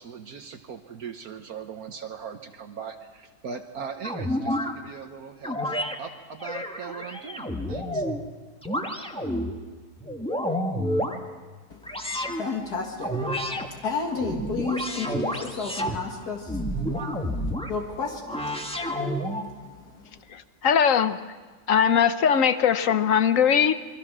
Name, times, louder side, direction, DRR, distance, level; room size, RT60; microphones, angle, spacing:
voice 1, 0.0-8.1, right 6 dB, 65° right, 5 dB, 1.5 m, -39 dB
sound 1, 4.0-4.7 5.4-5.9 6.4-8.2 8.6-9.5 10.0-11.2 11.8-12.4 13.0-13.7 14.1-16.0 16.5-17.7 18.3-19.5, equal, 5° left, 1.4 m, -29 dB
voice 2, 11.7-20.1, left 4 dB, 75° left, 1 dB, 2.4 m, -34 dB
voice 3, 20.3-21.2 21.7-23.7, left 8 dB, 60° left, 12 dB, 1.2 m, -20 dB
27.5 x 22.0 x 6.1 m, 1.4 s
omnidirectional pair, 1.7 m